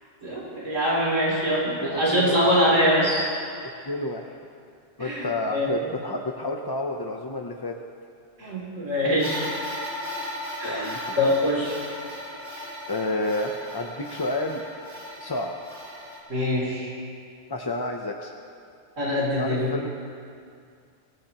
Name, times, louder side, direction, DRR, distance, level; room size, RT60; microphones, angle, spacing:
voice 1, 0.2-3.2 5.0-5.7 8.4-9.6 10.6-11.8 16.3-16.9 19.0-19.7, equal, 90° right, -6 dB, 3.6 m, -24 dB
voice 2, 1.8-2.4 3.8-4.3 5.0-7.8 10.6-11.4 12.9-14.6 15.2-15.6 17.5-18.3 19.4-19.9, left 2 dB, 30° left, 2 dB, 0.5 m, -30 dB
sound 1, 9.2-16.2, equal, 65° right, 2.3 m, -37 dB
23.0 x 15.0 x 3.0 m, 2.4 s
omnidirectional pair, 1.3 m